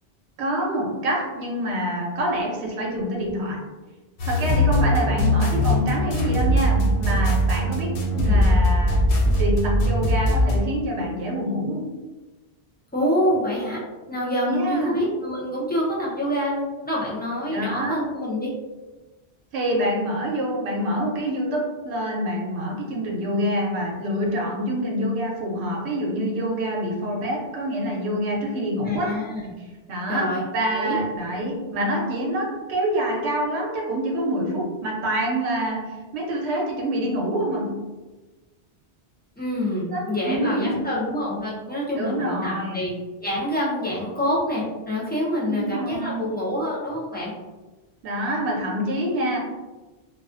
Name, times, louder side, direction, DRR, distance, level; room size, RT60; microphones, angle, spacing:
voice 1, 0.4-3.7 4.2-9.1 9.4-11.9 14.5-15.0 17.5-18.0 19.5-29.2 29.9-37.8 39.9-40.9 41.9-42.9 45.5-46.3 48.0-49.4, equal, 90° right, -1 dB, 0.9 m, -26 dB
sound 1, 4.2-10.6, equal, 85° left, 0.9 m, -20 dB
voice 2, 12.9-13.8 14.1-18.5 28.8-29.5 30.1-30.4 30.7-31.0 39.4-42.9 43.2-47.3, equal, 15° left, -7 dB, 0.4 m, -26 dB
2.4 x 2.3 x 2.4 m, 1.2 s
omnidirectional pair, 1.1 m